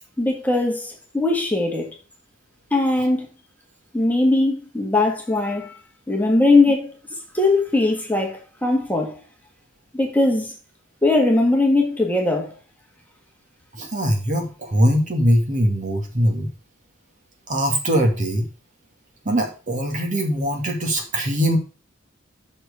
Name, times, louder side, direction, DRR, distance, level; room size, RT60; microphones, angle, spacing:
voice 1, 0.2-1.9 2.7-3.3 3.9-5.8 6.1-6.9 7.3-9.2 9.9-10.5 11.0-12.5, left 2 dB, 10° left, 1.7 m, -20 dB
voice 2, 13.7-16.5 17.5-18.5 19.2-21.6, equal, 40° right, 2.3 m, -21 dB
6.4 x 6.1 x 6.8 m
head